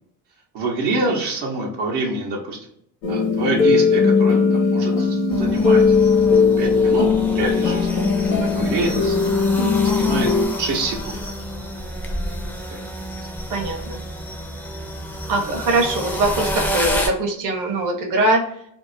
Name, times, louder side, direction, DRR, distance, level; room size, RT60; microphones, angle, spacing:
voice 1, 0.5-2.6 3.1-5.8 6.6-7.9 8.2-9.3 9.8-10.3 10.6-11.2 12.7-12.8, right 2 dB, 70° right, -1 dB, 0.9 m, -26 dB
sound 1, 3.0-10.4, left 5 dB, 70° left, 1.0 m, -18 dB
sound 2, 5.3-17.1, equal, 5° left, 0.5 m, -29 dB
voice 2, 13.5-14.0 15.3-18.4, right 2 dB, 45° right, 1 dB, 0.9 m, -22 dB
2.7 x 2.0 x 2.6 m, 0.69 s
supercardioid pair, 75°, 43 cm